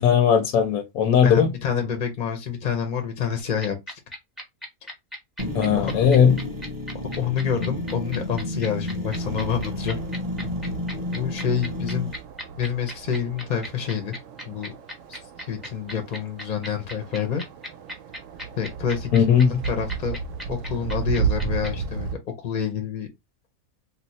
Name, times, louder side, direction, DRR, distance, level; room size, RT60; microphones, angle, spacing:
voice 1, 0.0-1.5 5.5-6.4 19.1-19.6, left 7 dB, 80° left, 1.0 m, -18 dB
voice 2, 1.2-3.8 5.8-6.1 7.2-10.0 11.1-12.1 12.6-14.2 14.5-14.7 15.1-15.2 15.5-17.5 18.6-19.3 19.6-20.2 20.5-23.1, left 7 dB, 50° left, 0.6 m, -28 dB
sound 1, 3.4-21.7, equal, ahead, 0.7 m, -36 dB
sound 2, 5.4-12.2, left 1 dB, 30° right, 0.4 m, -31 dB
sound 3, 9.1-22.2, right 6 dB, 70° right, 0.8 m, -34 dB
2.8 x 2.0 x 4.0 m
omnidirectional pair, 1.5 m